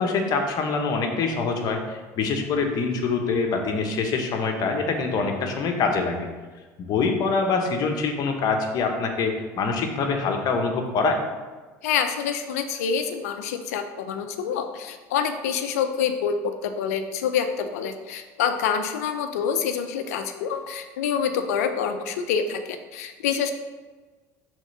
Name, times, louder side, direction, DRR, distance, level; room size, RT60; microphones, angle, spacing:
voice 1, 0.0-6.3 6.8-11.2, left 4 dB, 55° left, 3 dB, 1.2 m, -25 dB
voice 2, 11.8-23.5, left 7 dB, 85° left, 8 dB, 0.6 m, -27 dB
6.3 x 3.7 x 5.5 m, 1.3 s
hypercardioid pair, 85°, 8 cm